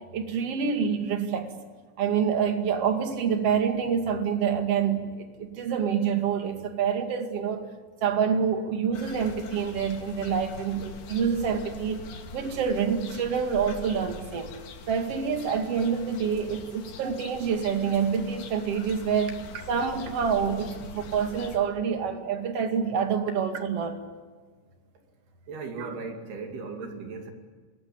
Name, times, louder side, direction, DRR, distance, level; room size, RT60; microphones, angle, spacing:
voice 1, 0.1-1.5 2.0-7.6 8.0-12.0 12.3-14.5 14.9-19.3 19.7-24.0 25.8-25.9, right 7 dB, 45° right, 2.4 m, -27 dB
sound 1, 8.9-21.6, left 4 dB, 85° left, 4.9 m, -43 dB
voice 2, 25.5-27.3, right 4 dB, 60° right, 4.4 m, -37 dB
27.5 x 21.5 x 8.7 m
omnidirectional pair, 5.4 m